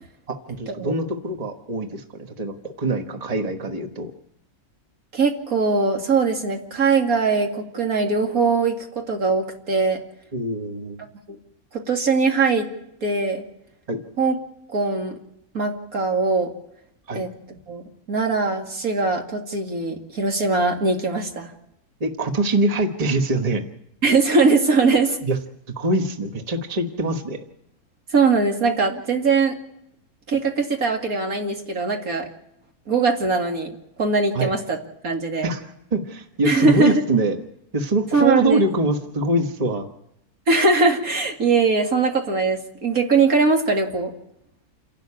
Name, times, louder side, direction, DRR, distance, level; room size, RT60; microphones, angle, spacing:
voice 1, 0.3-2.0 2.4-4.1 10.3-11.0 13.9-14.0 17.1-17.2 22.0-23.6 25.2-25.4 25.8-27.4 34.3-34.5 35.4-37.4 37.7-39.9, right 2 dB, 25° right, 5 dB, 1.4 m, -23 dB
voice 2, 5.1-10.0 11.7-12.7 13.0-13.4 14.2-14.3 14.7-15.1 15.5-16.5 17.1-17.3 17.7-17.8 18.1-21.5 24.0-25.2 28.1-29.6 30.3-32.3 32.9-34.8 35.0-35.5 36.4-36.9 38.1-38.6 40.5-44.1, right 4 dB, 65° right, 2 dB, 2.7 m, -21 dB
28.5 x 12.0 x 8.6 m, 0.80 s
omnidirectional pair, 1.6 m